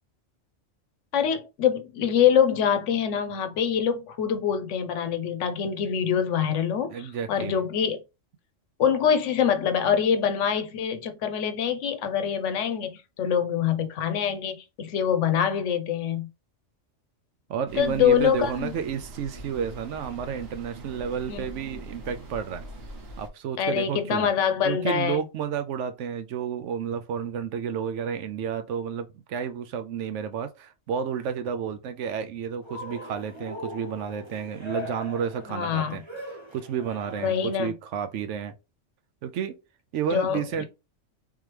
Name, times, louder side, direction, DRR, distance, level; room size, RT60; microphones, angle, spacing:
voice 1, 1.1-8.0 8.8-16.3 17.8-18.7 21.3-21.4 23.6-25.2 35.5-36.0 37.2-37.7 40.1-40.7, left 8 dB, 75° left, 0.9 m, -25 dB
voice 2, 6.9-7.6 17.5-22.7 23.2-24.3 24.6-36.0 36.5-38.5 39.2-39.6 39.9-40.7, right 7 dB, 75° right, 0.9 m, -31 dB
sound 1, 17.7-23.3, right 2 dB, 55° right, 1.2 m, -42 dB
Cheering, 32.6-37.6, left 1 dB, 25° right, 0.9 m, -40 dB
3.7 x 2.9 x 3.2 m
omnidirectional pair, 1.3 m